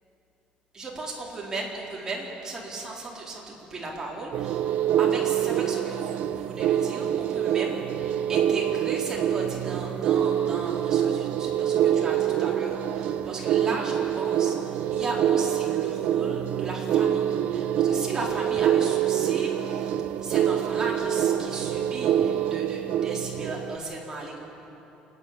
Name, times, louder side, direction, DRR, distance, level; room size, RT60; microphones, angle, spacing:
voice 1, 0.7-4.6 5.0-24.4, right 2 dB, 20° right, -3 dB, 4.0 m, -36 dB
sound 1, 4.3-23.8, right 10 dB, 65° right, 0.7 m, -25 dB
28.0 x 10.5 x 9.1 m, 3.0 s
cardioid pair, 145°, 3 cm